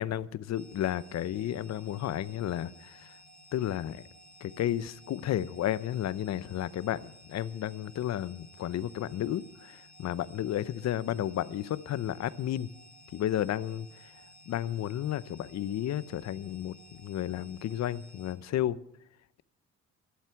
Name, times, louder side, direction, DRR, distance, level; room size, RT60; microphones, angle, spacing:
voice 1, 0.0-3.1 3.5-4.0 4.4-12.7 13.1-14.1 14.5-18.8, left 12 dB, 60° left, 18 dB, 0.7 m, -32 dB
sound 1, 0.5-18.3, equal, 55° right, 4.8 m, -55 dB
11.5 x 7.5 x 8.9 m, 0.75 s
cardioid pair, 90°, 30 cm